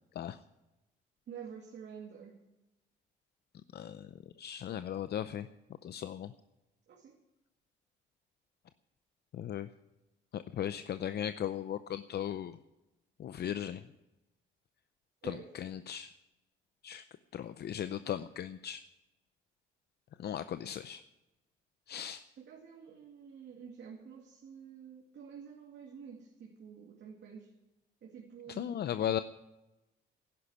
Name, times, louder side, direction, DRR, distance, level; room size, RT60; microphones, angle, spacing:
voice 1, 1.3-2.4 6.9-7.2 15.2-15.5 22.4-27.5 28.0-28.9, right 7 dB, 65° right, 0 dB, 2.2 m, -49 dB
voice 2, 3.7-4.1 4.4-5.5 5.8-6.3 9.3-9.7 10.3-12.6 13.2-13.8 15.2-16.1 16.8-17.0 17.3-18.8 20.2-21.0 21.9-22.2 28.5-29.2, left 10 dB, 55° left, 13 dB, 0.6 m, -37 dB
11.5 x 10.5 x 10.0 m, 1.0 s
cardioid pair, 90°, 20 cm